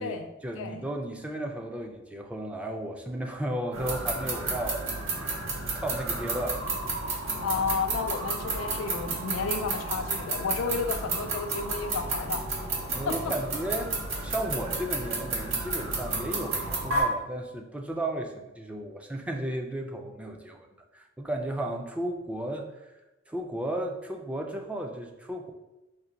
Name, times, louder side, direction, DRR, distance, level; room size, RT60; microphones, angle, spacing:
voice 1, 0.0-4.9 5.7-6.9 12.9-20.7 20.9-22.9 23.3-25.5, right 1 dB, 5° right, 2 dB, 0.3 m, -34 dB
sound 1, 3.7-17.0, right 3 dB, 85° right, 0.8 m, -32 dB
voice 2, 7.4-12.5 13.1-13.3, left 5 dB, 85° left, 7 dB, 0.4 m, -32 dB
4.7 x 2.1 x 2.8 m, 1.0 s
head